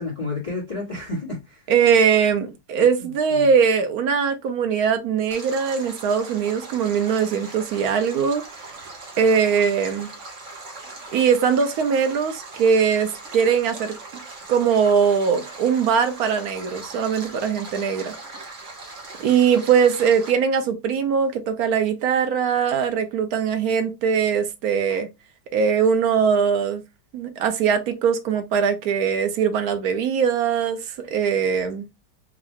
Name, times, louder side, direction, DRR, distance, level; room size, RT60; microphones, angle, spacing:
voice 1, 0.0-1.7 2.8-3.5, left 2 dB, 20° left, 1.5 m, -31 dB
voice 2, 1.7-8.4 9.2-10.1 11.1-13.9 14.5-18.1 19.2-25.1 25.5-26.8 27.1-31.9, right 6 dB, 65° right, 1.0 m, -21 dB
Stream, 5.3-20.3, right 3 dB, 50° right, 1.2 m, -40 dB
3.7 x 2.5 x 3.2 m
omnidirectional pair, 1.9 m